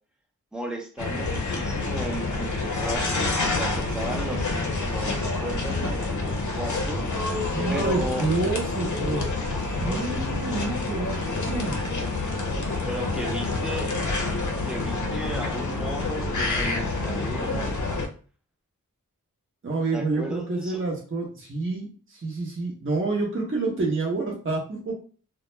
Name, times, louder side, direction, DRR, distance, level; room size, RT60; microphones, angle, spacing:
voice 1, 0.5-7.0 7.7-8.3 9.4-10.2 12.8-13.9 14.6-17.7 19.9-20.8, right 1 dB, ahead, 0 dB, 0.6 m, -35 dB
sound 1, 1.0-18.1, left 3 dB, 60° left, 0.6 m, -28 dB
voice 2, 7.5-9.3 9.6-11.7 19.6-25.0, right 3 dB, 35° right, -2 dB, 0.8 m, -28 dB
2.3 x 2.1 x 3.0 m, 0.40 s
wide cardioid pair, 70°, 34 cm